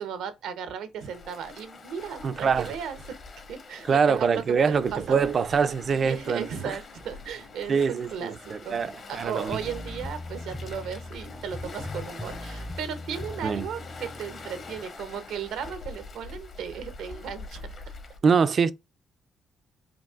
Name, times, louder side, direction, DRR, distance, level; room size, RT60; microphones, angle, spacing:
voice 1, 0.0-3.0 3.5-5.2 5.9-8.8 9.1-17.6, right 7 dB, 85° right, 0.7 m, -36 dB
Waves surf, 1.0-18.2, left 3 dB, 50° left, 1.1 m, -44 dB
voice 2, 2.2-2.7 3.9-6.8 7.7-9.6 13.4-13.7 18.2-18.7, right 6 dB, 50° right, 0.4 m, -24 dB
sound 1, 9.5-14.8, left 1 dB, 10° left, 0.5 m, -39 dB
5.1 x 2.7 x 2.3 m
cardioid pair, 90°, 0 cm